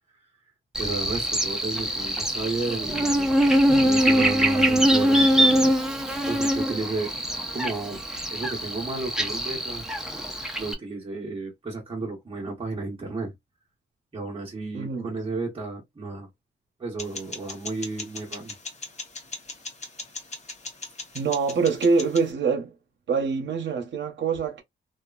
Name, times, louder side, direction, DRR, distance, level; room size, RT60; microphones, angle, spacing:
Buzz, 0.7-10.7, equal, 5° right, 0.6 m, -23 dB
voice 1, 0.8-3.3 3.7-5.7 6.3-7.1 7.5-8.0 8.3-9.8 10.6-13.3 14.1-16.3 16.8-18.5, right 3 dB, 25° right, 0.9 m, -33 dB
voice 2, 14.7-15.1 21.1-22.7 23.1-24.6, right 5 dB, 70° right, 0.8 m, -25 dB
sound 1, 17.0-22.3, left 3 dB, 35° left, 0.9 m, -39 dB
2.8 x 2.3 x 2.3 m
wide cardioid pair, 120°, 20 cm